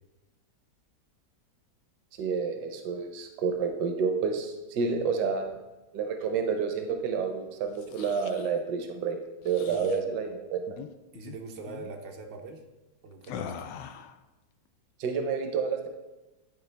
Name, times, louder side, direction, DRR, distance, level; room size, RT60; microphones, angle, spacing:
voice 1, 2.2-5.5 5.9-9.2 9.4-10.6 15.0-15.9, right 5 dB, 70° right, 5 dB, 1.3 m, -29 dB
sound 1, 7.7-8.5 9.4-10.0 10.7-10.9 11.1-11.4 11.7-11.9 13.2-14.2, left 7 dB, 85° left, 1.2 m, -42 dB
voice 2, 9.7-10.2 11.1-12.6 13.0-13.5, right 3 dB, 90° right, 2 dB, 1.6 m, -43 dB
11.0 x 4.6 x 3.3 m, 1.1 s
omnidirectional pair, 1.9 m